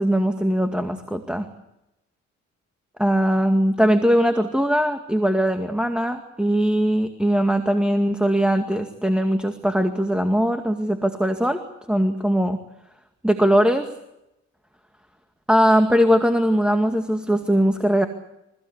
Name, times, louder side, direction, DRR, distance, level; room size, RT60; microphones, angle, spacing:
voice 1, 0.0-1.5 3.0-11.6 11.9-12.6 13.2-13.9 15.5-18.1, equal, 5° right, 6 dB, 2.1 m, -20 dB
29.5 x 16.5 x 8.4 m, 0.88 s
cardioid pair, 90°, 30 cm